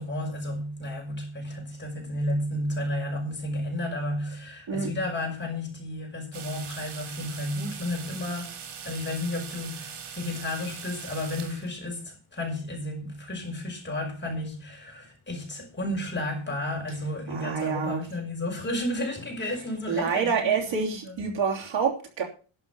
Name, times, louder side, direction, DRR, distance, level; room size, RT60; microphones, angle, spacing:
voice 1, 0.0-8.6 8.8-21.1, left 1 dB, 20° left, 5.2 m, -32 dB
sound 1, 6.3-11.8, right 7 dB, 85° right, 2.6 m, -41 dB
voice 2, 17.3-18.0 19.9-22.2, right 6 dB, 65° right, 3.3 m, -27 dB
11.5 x 7.4 x 7.0 m
wide cardioid pair, 145°, 48 cm